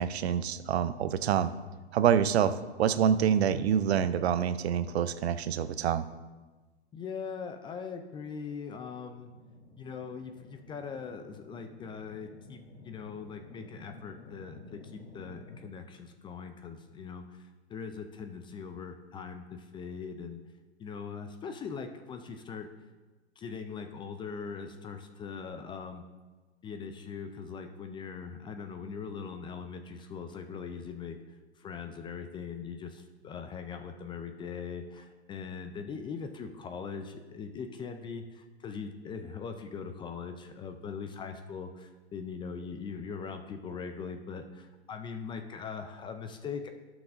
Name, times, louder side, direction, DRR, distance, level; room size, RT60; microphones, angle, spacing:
voice 1, 0.0-1.5 1.9-6.0, right 8 dB, 70° right, 13 dB, 0.7 m, -26 dB
voice 2, 6.9-9.3 9.8-17.2 17.7-20.4 20.8-22.7 23.4-26.0 26.6-31.2 31.6-46.7, left 5 dB, 15° left, 7 dB, 0.4 m, -41 dB
sound 1, 9.1-15.6, left 3 dB, 35° left, 2.9 m, -52 dB
15.5 x 6.1 x 2.6 m, 1.2 s
hypercardioid pair, 110°, 33 cm